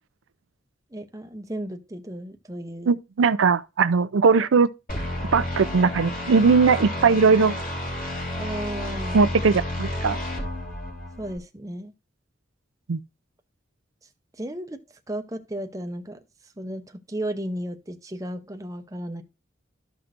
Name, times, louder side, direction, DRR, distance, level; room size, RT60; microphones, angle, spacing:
voice 1, 0.9-2.9 4.2-4.3 8.4-9.3 11.2-11.9 14.4-16.2 16.6-19.2, right 1 dB, 15° right, 0.7 m, -34 dB
voice 2, 2.9-4.7 5.3-7.6 9.1-10.2 12.9-13.0, right 5 dB, 85° right, 0.5 m, -19 dB
sound 1, 4.9-11.4, left 1 dB, 45° left, 3.6 m, -31 dB
13.0 x 5.8 x 2.6 m
head